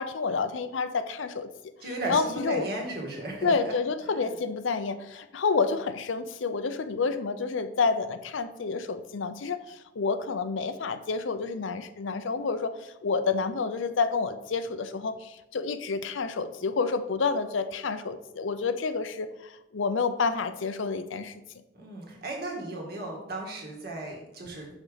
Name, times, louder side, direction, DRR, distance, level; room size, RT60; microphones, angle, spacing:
voice 1, 0.0-1.5 2.1-2.7 3.4-21.4, left 4 dB, 75° left, 11 dB, 0.5 m, -29 dB
voice 2, 1.8-3.8 4.0-4.3 21.7-24.7, right 2 dB, 50° right, -1 dB, 1.8 m, -35 dB
6.2 x 5.3 x 5.0 m, 0.91 s
head